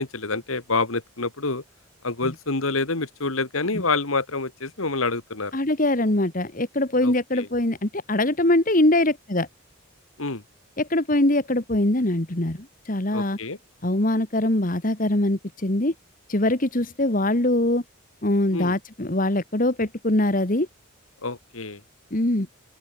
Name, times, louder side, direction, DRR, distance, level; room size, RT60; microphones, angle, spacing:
voice 1, 0.0-1.6 2.0-5.5 7.0-7.5 10.2-10.4 13.1-13.6 18.5-18.8 21.2-21.8, left 3 dB, 80° left, 2.2 m, -27 dB
voice 2, 5.5-9.5 10.8-13.4 13.8-15.9 16.3-17.8 18.2-20.7 22.1-22.5, left 1 dB, 40° left, 1.8 m, -22 dB
head